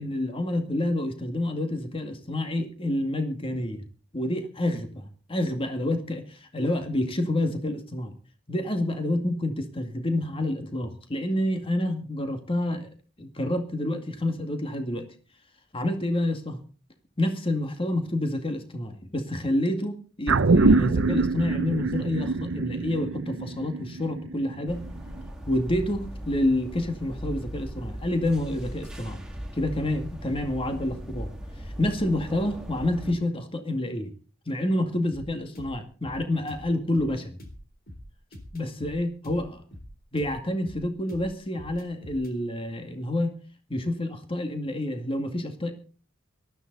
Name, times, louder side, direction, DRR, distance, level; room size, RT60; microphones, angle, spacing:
voice 1, 0.0-3.8 4.1-8.1 8.5-12.9 13.2-15.1 15.7-16.6 17.2-24.8 25.5-29.2 29.5-31.3 31.6-34.1 34.5-37.4 38.5-39.5 40.1-43.4 43.7-45.7, left 1 dB, 25° left, 6 dB, 2.1 m, -28 dB
sound 1, 20.3-24.9 25.2-25.3, right 3 dB, 65° right, 0.7 m, -24 dB
sound 2, 24.7-33.1, equal, 5° right, 2.5 m, -38 dB
sound 3, 35.1-42.4, equal, 45° left, 3.7 m, -45 dB
18.5 x 13.5 x 4.1 m, 0.37 s
head